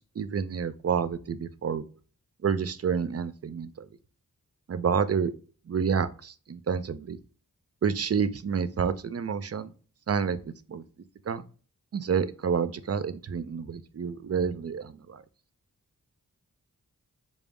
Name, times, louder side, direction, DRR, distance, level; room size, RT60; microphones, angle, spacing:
voice 1, 0.0-1.8 2.4-3.9 4.7-5.3 5.7-7.2 7.8-9.7 10.1-10.8 11.3-11.4 11.9-15.2, right 6 dB, 45° right, 13 dB, 0.4 m, -29 dB
5.0 x 2.0 x 3.3 m, 0.38 s
cardioid pair, 50°, 35 cm